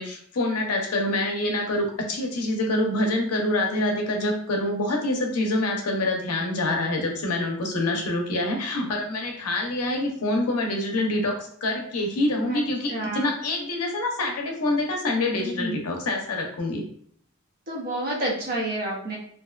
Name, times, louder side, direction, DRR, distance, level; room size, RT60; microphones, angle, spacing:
voice 1, 0.0-16.8, left 1 dB, 90° left, 2 dB, 0.6 m, -26 dB
voice 2, 12.9-13.3 15.4-15.8 17.7-19.2, right 1 dB, 40° right, -3 dB, 0.7 m, -29 dB
2.6 x 2.2 x 2.3 m, 0.62 s
head